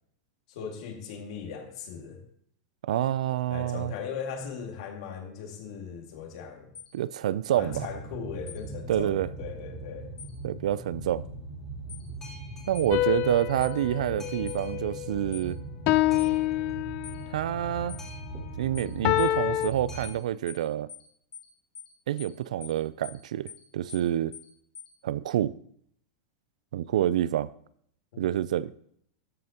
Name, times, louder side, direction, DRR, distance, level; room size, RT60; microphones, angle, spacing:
voice 1, 0.5-2.2 3.5-6.7 7.5-10.1 28.1-28.2, left 6 dB, 65° left, 2.2 m, -38 dB
voice 2, 2.8-3.9 6.9-7.9 8.9-9.3 10.4-11.2 12.7-15.6 17.3-18.0 18.6-20.9 22.1-24.3 25.0-25.5 26.7-27.5 28.2-28.7, right 11 dB, 85° right, 0.4 m, -28 dB
sound 1, 6.7-6.9 8.5-8.6 10.2-10.3 11.9-12.1 12.7-12.9 13.6-13.8 14.5-14.6 15.3-15.5 16.2-16.3 17.0-17.2 17.9-18.1 18.7-18.9 19.2-19.3 19.6-19.8 20.0-20.2 20.5-20.6 20.9-21.1 21.3-21.5 21.7-21.9 22.2-22.3 22.6-22.8 23.0-23.2 23.5-23.6 23.9-24.1 24.3-24.5 24.7-24.9, left 7 dB, 25° left, 1.2 m, -44 dB
Boat Water vehicle, 7.6-20.1, right 1 dB, 10° left, 2.9 m, -40 dB
sound 2, 12.9-15.3 15.9-17.4 19.0-19.7, left 15 dB, 40° left, 0.4 m, -27 dB
13.0 x 7.6 x 2.9 m
supercardioid pair, 145°, 4 cm